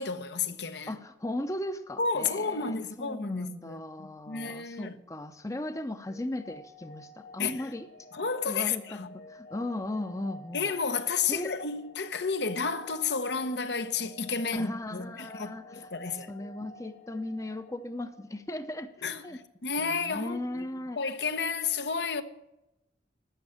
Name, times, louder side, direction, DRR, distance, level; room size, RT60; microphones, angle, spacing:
voice 1, 0.0-0.9 2.0-5.0 7.4-7.6 8.1-9.1 10.5-16.3 19.0-20.7 21.0-22.2, left 5 dB, 70° left, 1.0 m, -32 dB
voice 2, 0.9-7.9 8.4-10.7 11.3-11.6 14.5-18.9 19.2-19.4 19.8-21.0, left 1 dB, 20° left, 0.7 m, -37 dB
sound 1, 6.0-18.8, left 1 dB, 90° left, 5.3 m, -51 dB
12.5 x 7.7 x 10.0 m
head